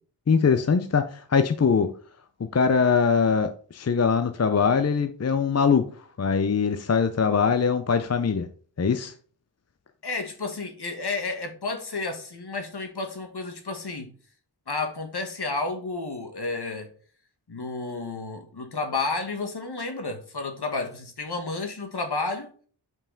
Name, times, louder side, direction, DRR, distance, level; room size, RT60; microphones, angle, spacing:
voice 1, 0.3-1.9 2.4-5.9 6.2-8.5 8.8-9.1, left 5 dB, 40° left, 0.5 m, -22 dB
voice 2, 10.0-14.1 14.7-16.9 17.5-22.5, left 3 dB, 65° left, 1.3 m, -31 dB
5.6 x 4.6 x 3.7 m
wide cardioid pair, 50°, 43 cm